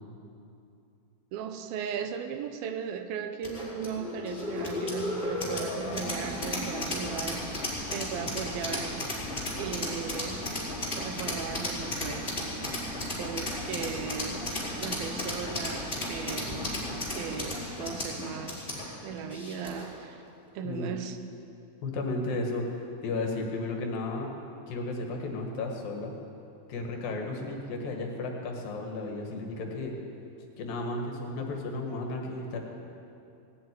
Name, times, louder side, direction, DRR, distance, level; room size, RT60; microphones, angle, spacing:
voice 1, 1.3-9.1 9.6-10.4 11.0-12.3 13.2-18.7 19.0-20.2 20.5-21.2, right 7 dB, 85° right, 8 dB, 2.7 m, -37 dB
sound 1, 3.4-20.0, left 1 dB, 15° left, 4.6 m, -34 dB
voice 2, 16.4-16.8 20.6-20.9 21.8-22.7 23.0-24.3 24.7-26.1 26.7-29.9 30.6-32.6, left 2 dB, 75° left, 2 dB, 3.4 m, -34 dB
18.0 x 7.7 x 9.7 m, 2.6 s
omnidirectional pair, 4.2 m